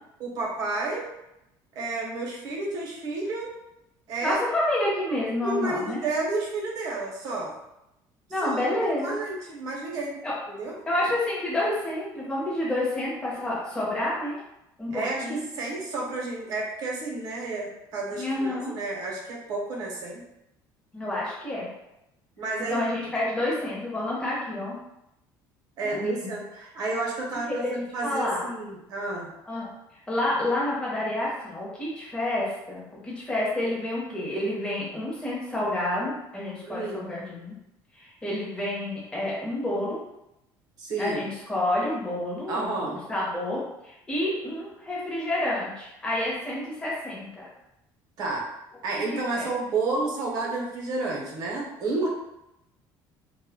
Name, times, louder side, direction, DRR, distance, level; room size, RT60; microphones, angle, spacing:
voice 1, 0.2-1.0 1.7-3.5 4.1-4.4 5.4-7.5 8.4-8.7 9.0-10.2 10.5-10.8 14.9-20.2 22.4-22.8 25.8-29.3 36.6-37.1 40.8-41.2 42.5-43.0 48.2-48.4 48.8-52.1, right 3 dB, 50° right, -2 dB, 0.8 m, -31 dB
voice 2, 4.2-6.0 8.3-9.2 10.2-10.3 10.9-14.4 14.8-15.4 18.1-18.7 20.9-21.7 22.6-24.7 25.8-26.3 27.5-27.7 28.0-28.4 29.5-37.6 37.9-40.0 41.0-47.4 49.3-49.5, left 1 dB, 10° left, -7 dB, 0.7 m, -29 dB
2.1 x 2.0 x 3.5 m, 0.88 s
cardioid pair, 160°, 8 cm